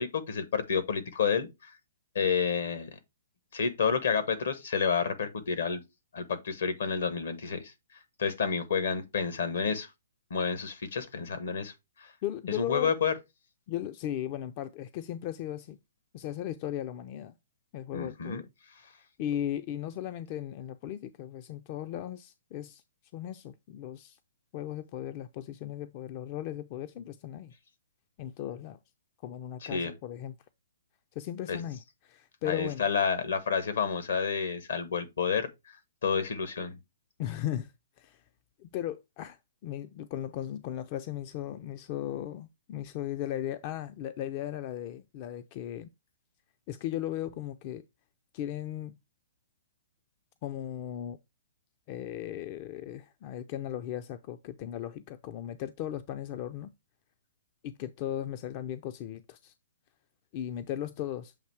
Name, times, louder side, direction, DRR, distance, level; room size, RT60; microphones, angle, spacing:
voice 1, 0.0-1.5 2.1-2.9 3.5-5.8 6.1-7.6 8.2-9.9 10.3-11.7 12.0-12.1 12.5-13.1 17.9-18.4 29.6-29.9 31.5-31.6 32.4-35.5 36.0-36.8, left 6 dB, 75° left, 1.3 m, -29 dB
voice 2, 12.2-12.9 13.7-15.8 16.1-17.3 17.7-18.5 19.2-22.8 23.1-24.2 24.5-27.5 28.2-28.8 29.2-30.3 31.2-31.8 32.0-32.9 37.2-37.7 38.0-38.2 38.6-45.9 46.7-47.8 48.3-49.0 50.4-51.2 51.9-56.7 57.6-59.5 60.3-61.3, left 11 dB, 40° left, 0.4 m, -37 dB
7.3 x 2.8 x 4.6 m
hypercardioid pair, 130°, 0 cm